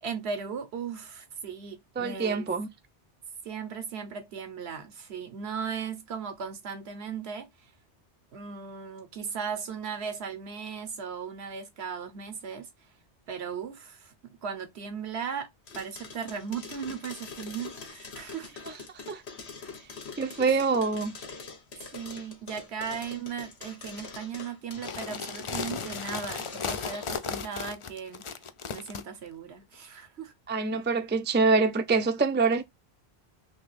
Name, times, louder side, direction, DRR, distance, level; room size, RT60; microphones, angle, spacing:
voice 1, 0.0-2.5 3.4-7.7 8.3-12.7 13.3-14.1 14.4-15.5 15.7-18.5 21.9-28.3 28.7-30.3, right 6 dB, 80° right, 1.1 m, -37 dB
voice 2, 2.0-2.7 19.1-19.2 20.2-21.1 30.5-32.6, right 4 dB, 15° right, 0.4 m, -25 dB
sound 1, 15.7-27.2, left 4 dB, 75° left, 1.4 m, -44 dB
sound 2, 24.7-29.0, left 6 dB, 55° left, 0.3 m, -35 dB
3.3 x 2.9 x 3.2 m
omnidirectional pair, 1.1 m